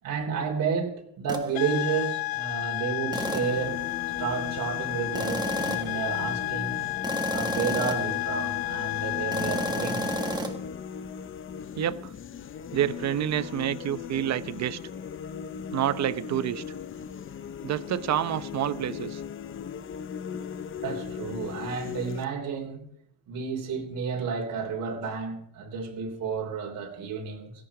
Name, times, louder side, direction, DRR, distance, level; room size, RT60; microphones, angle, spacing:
voice 1, 0.0-3.8 4.2-6.8 7.3-10.2 13.4-13.5 20.8-22.8 23.3-27.5, right 6 dB, 65° right, 3.6 m, -31 dB
sound 1, 1.3-1.5 3.1-3.6 5.1-6.0 7.0-8.2 9.3-10.5, right 2 dB, 10° right, 1.8 m, -31 dB
sound 2, 1.5-10.5, left 23 dB, 80° left, 0.6 m, -32 dB
sound 3, 3.2-22.3, left 7 dB, 35° left, 0.8 m, -38 dB
voice 2, 11.8-12.1 12.7-14.8 15.7-16.6 17.6-19.2, right 11 dB, 50° right, 0.9 m, -28 dB
17.0 x 16.5 x 5.0 m
cardioid pair, 155°, 35 cm